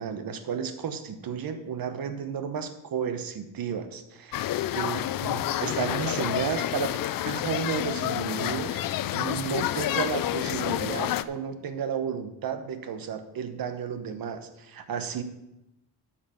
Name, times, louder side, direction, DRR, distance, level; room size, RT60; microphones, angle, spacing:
voice 1, 0.0-4.4 4.7-7.0 7.2-8.8 9.1-15.2, right 7 dB, 55° right, 9 dB, 1.2 m, -32 dB
sound 1, 4.3-11.2, left 13 dB, 55° left, 0.5 m, -29 dB
8.5 x 5.8 x 7.1 m, 0.90 s
cardioid pair, 105°, 40 cm